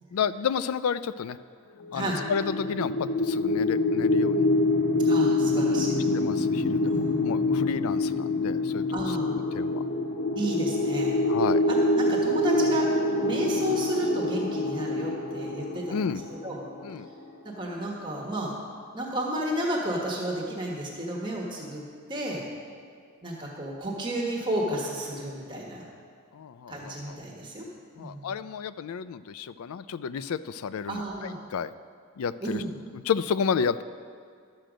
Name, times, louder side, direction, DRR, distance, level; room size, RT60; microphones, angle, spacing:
voice 1, 0.1-1.4 1.9-4.4 6.1-9.8 11.3-11.6 15.9-16.2 16.8-17.1 26.3-27.2 28.0-31.0 31.5-31.7 32.2-32.6 32.9-33.8, left 6 dB, 85° left, 15 dB, 0.4 m, -31 dB
sound 1, 1.9-17.0, left 2 dB, 55° left, 0.9 m, -26 dB
voice 2, 1.9-2.2 5.0-6.0 6.8-7.5 8.9-9.3 10.3-11.2 11.7-12.9 13.2-16.6 17.6-18.5 18.9-21.8 22.1-22.4 23.2-25.8 26.7-27.6 28.0-28.3 30.9-31.4 32.4-32.8, right 1 dB, 20° right, -2 dB, 1.4 m, -32 dB
12.0 x 7.7 x 5.1 m, 2.2 s
head